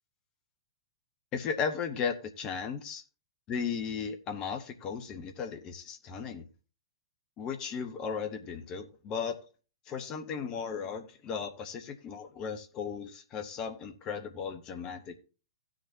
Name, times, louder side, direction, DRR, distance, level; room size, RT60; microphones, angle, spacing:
voice 1, 1.3-3.0 3.5-6.5 7.4-9.4 9.9-15.2, left 6 dB, 30° left, 7 dB, 1.4 m, -36 dB
16.5 x 6.5 x 2.9 m, 0.34 s
figure-of-eight pair, 105°, 2 cm